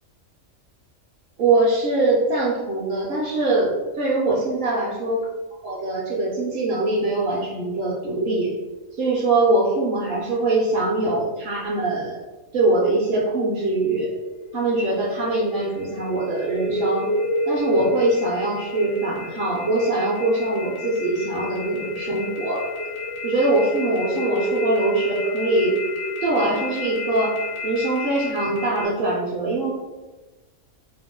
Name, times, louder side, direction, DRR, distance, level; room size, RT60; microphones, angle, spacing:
voice 1, 1.4-3.7 4.0-5.3 5.6-8.5 9.0-12.2 12.5-14.1 14.5-17.1 17.5-22.6 23.2-25.8 26.2-27.4 27.6-29.7, right 2 dB, 55° right, -6 dB, 0.7 m, -22 dB
sound 1, 14.1-28.8, left 1 dB, 45° left, 0.3 m, -29 dB
2.7 x 2.0 x 3.6 m, 1.2 s
omnidirectional pair, 1.4 m